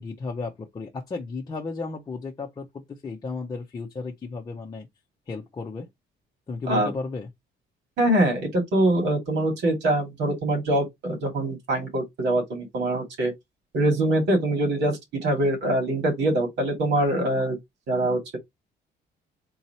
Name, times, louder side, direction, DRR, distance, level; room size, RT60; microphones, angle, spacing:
voice 1, 0.0-4.9 5.3-5.9 6.5-7.3, left 4 dB, 20° left, 0.6 m, -34 dB
voice 2, 8.0-13.3 13.7-17.6 17.9-18.4, right 1 dB, 80° right, 2.1 m, -24 dB
3.8 x 2.8 x 4.2 m
cardioid pair, 170°, 18 cm